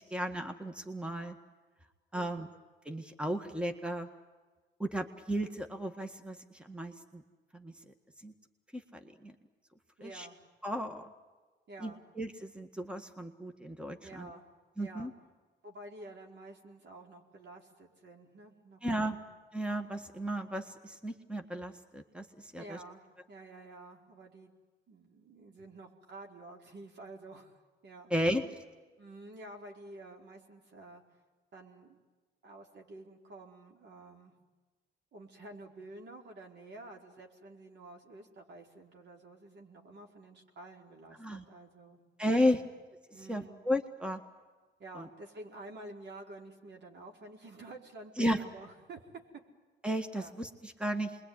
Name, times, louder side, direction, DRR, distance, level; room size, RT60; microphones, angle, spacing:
voice 1, 0.0-1.4 2.1-2.5 2.9-4.1 4.8-7.2 7.5-7.9 8.2-8.3 8.7-9.4 10.0-10.3 10.6-11.1 11.8-14.3 14.8-15.1 18.8-19.2 19.5-22.8 28.1-28.4 41.2-41.4 42.2-42.6 43.3-44.2 45.0-45.1 48.2-48.4 49.8-51.2, equal, 5° right, 7 dB, 1.8 m, -34 dB
voice 2, 2.1-2.5 10.0-10.4 11.7-12.0 14.0-14.5 14.8-15.1 15.6-19.2 22.6-23.0 23.3-24.5 24.9-27.6 27.8-28.1 29.0-31.0 31.5-32.0 32.4-34.3 35.1-42.7 43.1-43.6 44.8-49.0 50.1-50.3, right 2 dB, 60° right, 1 dB, 4.6 m, -50 dB
27.5 x 22.5 x 9.7 m, 1.3 s
cardioid pair, 90°, 20 cm